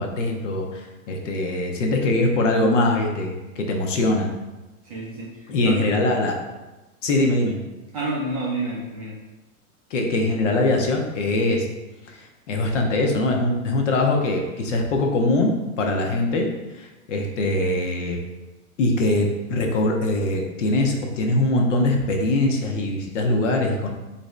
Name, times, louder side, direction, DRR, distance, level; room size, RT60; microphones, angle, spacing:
voice 1, 0.0-4.3 5.5-6.3 7.0-7.6 9.9-11.7 12.1-15.5 15.8-16.5 16.8-18.2 18.8-23.9, left 2 dB, 55° left, 2 dB, 0.7 m, -22 dB
voice 2, 4.8-5.9 7.9-9.1, right 2 dB, 25° right, -5 dB, 0.4 m, -29 dB
3.3 x 2.6 x 3.1 m, 1.1 s
hypercardioid pair, 150°, 44 cm